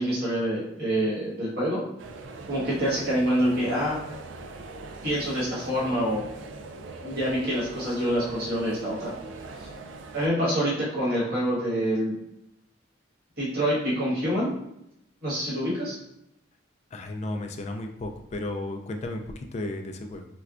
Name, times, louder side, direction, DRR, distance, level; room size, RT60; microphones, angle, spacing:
voice 1, 0.0-1.8 2.5-4.0 5.0-6.3 7.0-9.1 9.6-9.7 10.1-12.1 13.4-14.5 15.2-16.0, equal, 55° right, -7 dB, 1.4 m, -26 dB
sound 1, 2.0-10.3, right 3 dB, 85° right, 0.4 m, -41 dB
voice 2, 16.9-20.3, left 2 dB, 35° left, 4 dB, 0.3 m, -34 dB
4.4 x 2.2 x 2.4 m, 0.81 s
head